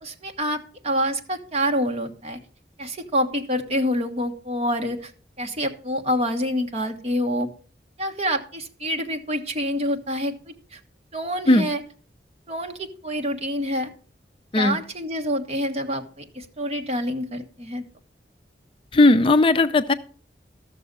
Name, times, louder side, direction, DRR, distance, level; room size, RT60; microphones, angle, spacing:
voice 1, 0.0-2.4 2.8-5.1 5.4-7.5 8.0-10.8 11.1-11.8 12.5-13.9 14.5-17.8, equal, 35° right, 4 dB, 1.3 m, -27 dB
voice 2, 18.9-19.9, left 2 dB, 30° left, 10 dB, 0.4 m, -17 dB
13.5 x 6.7 x 5.4 m, 0.41 s
head